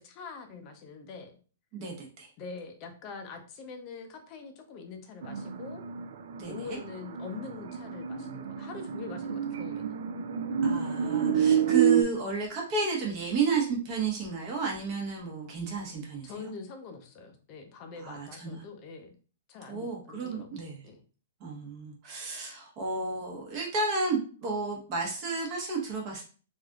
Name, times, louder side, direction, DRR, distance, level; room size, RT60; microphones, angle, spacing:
voice 1, 0.0-1.3 2.4-5.8 6.4-10.0 16.2-19.1 19.5-21.0, left 4 dB, 35° left, 6 dB, 0.6 m, -44 dB
voice 2, 1.7-2.3 6.4-6.8 10.6-16.3 18.0-18.6 19.7-20.9 21.4-26.2, right 4 dB, 35° right, 0 dB, 1.0 m, -32 dB
sound 1, 5.2-12.0, right 8 dB, 65° right, 0.3 m, -28 dB
3.3 x 2.6 x 2.3 m, 0.38 s
hypercardioid pair, 150°, 0 cm